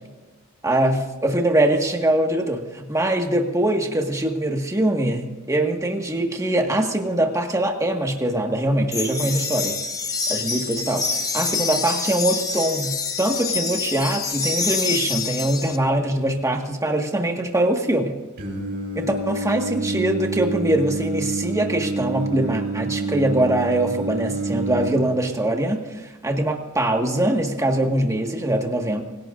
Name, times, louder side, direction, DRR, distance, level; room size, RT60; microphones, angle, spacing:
voice 1, 0.6-9.8 10.3-11.0 11.3-12.9 13.2-18.1 18.9-29.0, right 1 dB, 15° right, 2 dB, 1.7 m, -22 dB
sound 1, 8.9-15.8, left 4 dB, 15° left, 1.1 m, -26 dB
Singing, 18.4-24.9, right 3 dB, 50° right, 5.0 m, -28 dB
26.0 x 17.0 x 2.6 m, 1.2 s
head